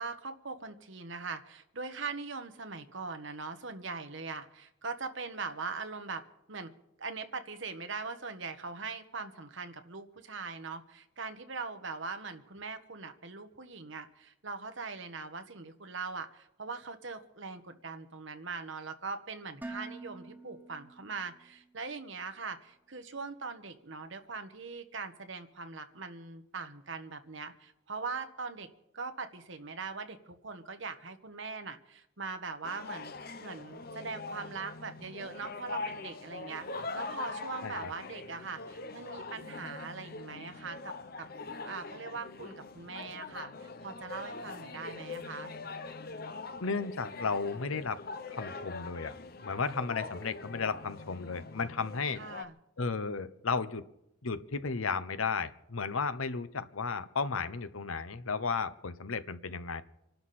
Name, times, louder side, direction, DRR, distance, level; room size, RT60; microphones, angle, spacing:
voice 1, 0.0-6.2 6.5-6.7 7.0-28.7 28.9-33.1 33.4-41.3 41.6-45.5 52.2-52.5, right 4 dB, 65° right, 7 dB, 1.3 m, -41 dB
Dishes pots and pans, 19.6-21.7, right 2 dB, 10° right, 0.6 m, -46 dB
sound 1, 32.6-52.5, left 3 dB, 45° left, 0.7 m, -43 dB
voice 2, 46.6-48.0 48.3-49.1 49.4-52.2 52.8-53.8 54.2-59.8, left 4 dB, 85° left, 13 dB, 0.9 m, -34 dB
26.5 x 12.0 x 4.3 m, 0.83 s
head